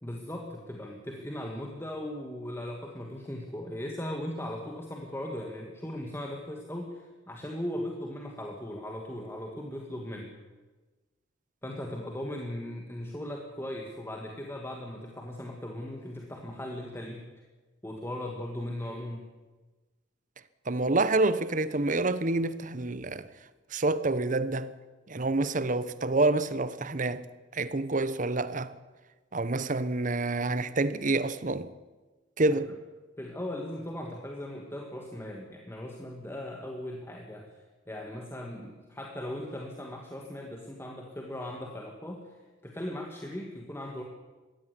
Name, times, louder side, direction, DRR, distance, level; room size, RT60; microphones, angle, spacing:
voice 1, 0.0-10.3 11.6-17.3 17.8-19.3 32.5-32.6 33.2-37.6 37.9-42.3 42.6-44.0, left 1 dB, 15° left, 2.2 m, -38 dB
voice 2, 20.7-23.3 23.7-24.7 25.1-27.2 27.5-28.7 29.3-31.7 32.4-32.7, right 2 dB, 45° right, 1.0 m, -27 dB
22.0 x 16.0 x 10.0 m
head